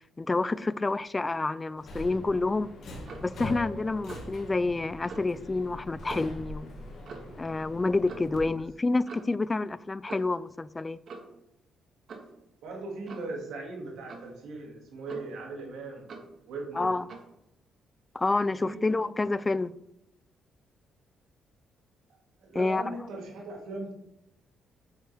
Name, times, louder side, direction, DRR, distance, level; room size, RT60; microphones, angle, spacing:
voice 1, 0.2-2.7 3.2-6.7 7.4-11.0 16.8-17.1 18.1-19.7 22.6-23.0, left 3 dB, 20° left, 0.3 m, -28 dB
Subway metro underground, 1.8-8.4, left 1 dB, 60° left, 1.8 m, -42 dB
Clock, 3.1-3.3 4.1-4.4 5.1-5.3 6.1-6.4 7.1-7.4 8.1-8.3 9.1-9.4 10.1-10.4 11.1-11.4 12.1-12.3 13.1-13.4 14.1-14.3 15.1-15.5 16.1-16.4 17.1-17.3, right 4 dB, 60° right, 1.5 m, -44 dB
voice 2, 12.6-16.1 16.5-16.9 18.3-18.8 22.4-23.9, right 2 dB, 85° right, 2.2 m, -39 dB
7.7 x 6.7 x 3.5 m
cardioid pair, 90°, 0 cm